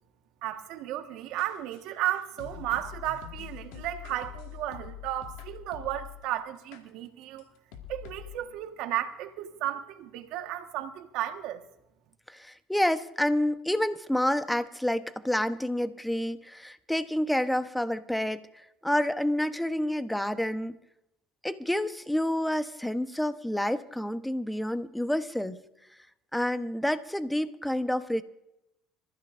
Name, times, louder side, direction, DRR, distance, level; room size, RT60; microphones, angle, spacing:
voice 1, 0.4-7.5 7.9-11.6, right 12 dB, 70° right, 1.5 m, -34 dB
sound 1, 1.4-6.2 6.7-6.8 7.4-7.5 7.7-8.4, left 10 dB, 85° left, 2.2 m, -44 dB
voice 2, 12.3-18.4 18.8-20.8 21.4-25.6 26.3-28.2, left 1 dB, 5° left, 1.0 m, -28 dB
25.5 x 15.0 x 2.6 m
supercardioid pair, 90°, 0 cm